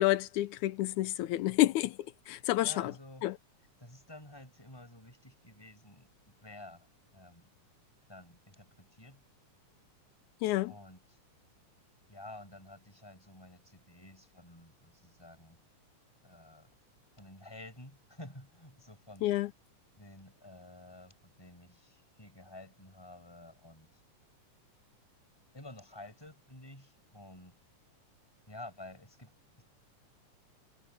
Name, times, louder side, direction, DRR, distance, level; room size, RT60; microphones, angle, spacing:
voice 1, 0.0-2.0 2.3-2.9 3.2-3.3 10.4-10.7 19.2-19.5, left 16 dB, 80° left, 2.0 m, -29 dB
voice 2, 2.6-3.3 3.8-6.9 7.1-7.5 8.1-9.2 10.7-11.2 12.1-15.6 16.2-16.7 17.1-19.3 20.0-24.0 25.5-27.6 28.5-29.6, left 1 dB, 5° left, 6.7 m, -51 dB
omnidirectional pair, 3.6 m